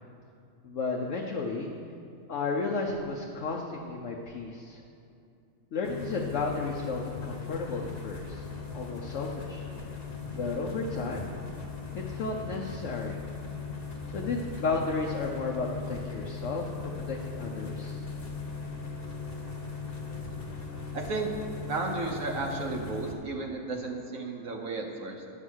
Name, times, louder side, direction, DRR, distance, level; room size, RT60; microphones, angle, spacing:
voice 1, 0.6-1.7 2.3-4.8 5.7-8.4 8.7-9.7 10.3-11.4 11.9-13.2 14.1-18.0, left 3 dB, 65° left, -1 dB, 1.1 m, -33 dB
sound 1, 5.8-23.1, left 5 dB, 45° left, 1.4 m, -38 dB
voice 2, 20.9-21.3 21.7-25.3, right 3 dB, 75° right, 1 dB, 1.4 m, -33 dB
9.9 x 7.0 x 6.2 m, 2.5 s
omnidirectional pair, 1.4 m